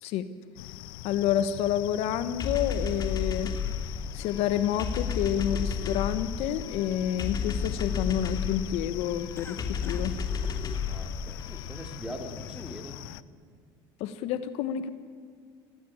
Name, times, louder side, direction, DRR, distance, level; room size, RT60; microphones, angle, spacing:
sound 1, 0.6-13.2, left 16 dB, 85° left, 0.6 m, -42 dB
voice 1, 1.0-3.5 4.1-10.2 14.0-14.9, left 10 dB, 70° left, 12 dB, 1.2 m, -29 dB
sound 2, 2.4-12.0, left 6 dB, 35° left, 2.9 m, -33 dB
Cough, 9.3-10.1 10.4-10.6 11.3-11.7 12.1-12.8, left 3 dB, 20° left, 1.5 m, -48 dB
voice 2, 10.9-13.0, right 1 dB, 10° right, 4 dB, 3.3 m, -42 dB
18.5 x 17.0 x 8.9 m, 2.1 s
supercardioid pair, 90°, 11 cm